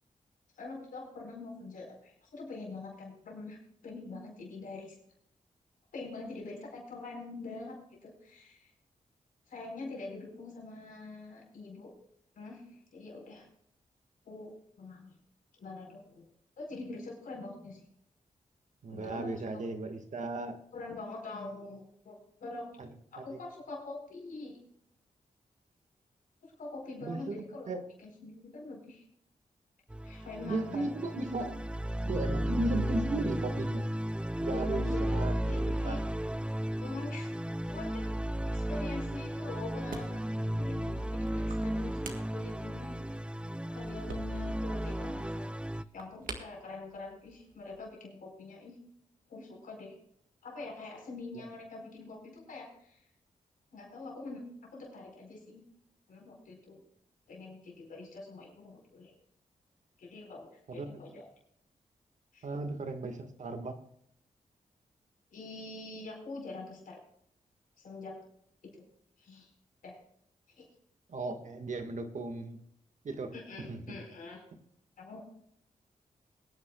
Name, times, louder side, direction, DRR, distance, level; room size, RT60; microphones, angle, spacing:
voice 1, 0.5-5.0 5.9-8.7 9.5-11.9 12.4-13.5 14.2-15.1 15.5-16.3 16.6-17.8 18.9-19.3 20.7-22.7 23.1-24.6 26.4-27.7 28.0-29.0 30.0-30.9 34.5-36.0 36.8-38.1 38.5-40.3 40.6-43.0 43.7-48.8 49.3-50.0 50.4-53.0 53.7-55.6 56.1-56.8 57.3-59.1 60.0-61.3 62.3-62.5 65.3-67.0 67.8-68.2 68.6-68.8 69.2-69.5 69.8-70.0 70.5-70.7 73.3-74.4 75.0-75.2, left 3 dB, 85° left, -1 dB, 4.6 m, -44 dB
voice 2, 18.8-20.6 22.8-22.9 23.2-23.4 27.0-27.8 30.4-31.5 32.1-33.8 34.4-36.0 51.4-51.5 60.7-61.2 62.4-63.8 71.1-72.6 73.0-73.3 73.7-74.0, right 2 dB, 60° right, 6 dB, 1.8 m, -36 dB
sound 1, 29.9-45.8, right 1 dB, 5° right, 0.5 m, -34 dB
sound 2, 39.2-47.9, right 4 dB, 85° right, 1.8 m, -50 dB
22.5 x 9.8 x 2.4 m, 0.71 s
cardioid pair, 75°, 14 cm